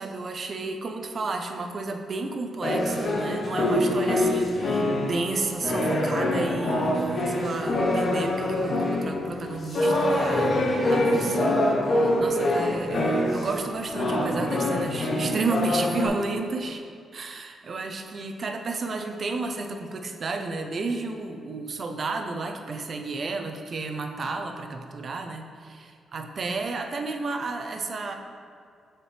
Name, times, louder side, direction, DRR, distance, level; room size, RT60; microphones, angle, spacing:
voice 1, 0.0-11.5 11.9-16.8 17.1-28.1, right 3 dB, 45° right, 5 dB, 0.5 m, -32 dB
sound 1, 2.6-13.6 13.9-16.1, left 1 dB, 45° left, 0.9 m, -25 dB
7.5 x 4.4 x 3.3 m, 2.2 s
wide cardioid pair, 145°, 0 cm